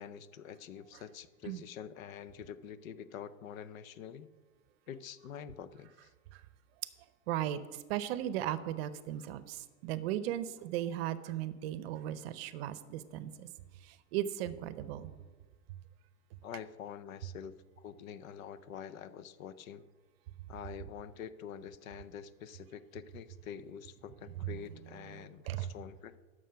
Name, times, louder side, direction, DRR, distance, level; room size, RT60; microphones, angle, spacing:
voice 1, 0.0-4.3 4.9-6.1 16.4-19.8 20.5-26.2, left 8 dB, 75° left, 15 dB, 0.7 m, -46 dB
voice 2, 7.3-7.6 7.9-13.5 14.1-15.1 25.5-25.7, right 12 dB, 45° right, 15 dB, 0.7 m, -36 dB
11.0 x 6.4 x 5.7 m, 1.4 s
hypercardioid pair, 135°, 41 cm